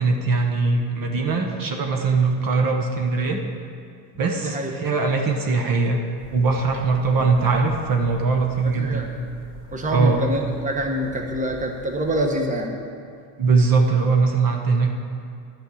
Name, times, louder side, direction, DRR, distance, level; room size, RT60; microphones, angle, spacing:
voice 1, 0.0-3.4 4.2-6.0 6.3-9.1 9.9-10.2 13.4-14.9, right 4 dB, 50° right, 2 dB, 1.1 m, -21 dB
sound 1, 6.2-12.3, equal, 65° right, 2.7 m, -44 dB
voice 2, 8.8-9.1 9.7-12.7, right 1 dB, 15° right, 2 dB, 1.2 m, -25 dB
10.5 x 5.5 x 8.5 m, 2.3 s
cardioid pair, 105°, 44 cm